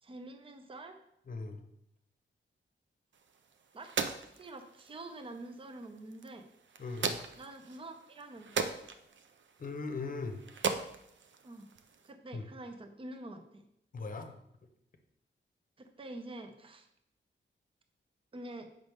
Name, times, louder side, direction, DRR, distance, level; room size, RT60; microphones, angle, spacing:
voice 1, 0.0-1.0 3.7-3.9 4.4-6.5 7.4-8.7 11.4-11.7 12.0-13.6 15.8-16.9 18.3-18.7, right 2 dB, 25° right, 6 dB, 0.6 m, -46 dB
voice 2, 1.3-1.6 6.8-7.2 9.6-10.4 12.3-12.4 13.9-14.3, left 3 dB, 45° left, 6 dB, 0.8 m, -39 dB
sound 1, 3.1-12.1, right 5 dB, 65° right, 0.6 m, -40 dB
7.7 x 5.2 x 3.5 m, 0.75 s
wide cardioid pair, 180°, 20 cm